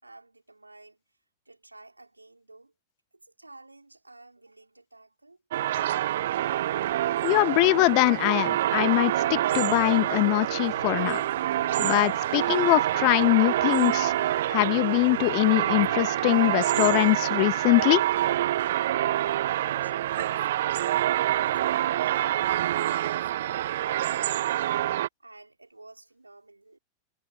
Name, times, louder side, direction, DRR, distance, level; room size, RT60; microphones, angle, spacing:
voice 1, 0.0-1.0 1.5-2.7 3.2-5.4 19.1-20.4 20.8-24.7 25.2-26.8, right 2 dB, 85° right, 4.5 m, -51 dB
sound 1, 5.5-25.1, right 13 dB, 60° right, 0.6 m, -26 dB
voice 2, 7.2-11.2 11.8-14.1 14.5-18.0, left 37 dB, 45° left, 0.6 m, -23 dB
sound 2, 9.5-17.0, left 4 dB, 80° left, 4.0 m, -49 dB
figure-of-eight pair, 90°, 0 cm